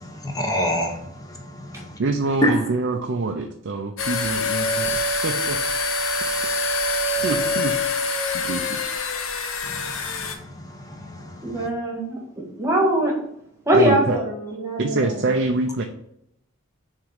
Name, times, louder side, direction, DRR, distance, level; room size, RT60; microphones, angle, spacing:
voice 1, 0.0-2.0 2.4-2.7 7.2-7.3 9.6-11.7, equal, 15° left, 2 dB, 1.1 m, -28 dB
voice 2, 2.0-5.6 7.2-7.7 8.3-8.8 13.7-14.2 14.8-15.8, right 3 dB, 55° right, 3 dB, 0.6 m, -25 dB
sound 1, 4.0-10.4, left 2 dB, 65° left, 0.8 m, -25 dB
voice 3, 11.4-12.2 12.6-13.1 13.7-15.4, right 1 dB, 15° right, -2 dB, 1.6 m, -22 dB
6.4 x 3.7 x 5.2 m, 0.76 s
head